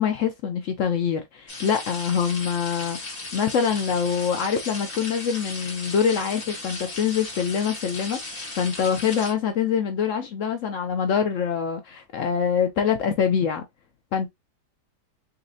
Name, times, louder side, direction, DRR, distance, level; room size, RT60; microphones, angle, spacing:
voice 1, 0.0-13.6 14.1-14.3, left 7 dB, 70° left, 0.7 m, -25 dB
sound 1, 1.5-9.3, left 2 dB, 35° left, 1.4 m, -36 dB
4.1 x 2.5 x 2.6 m
omnidirectional pair, 1.7 m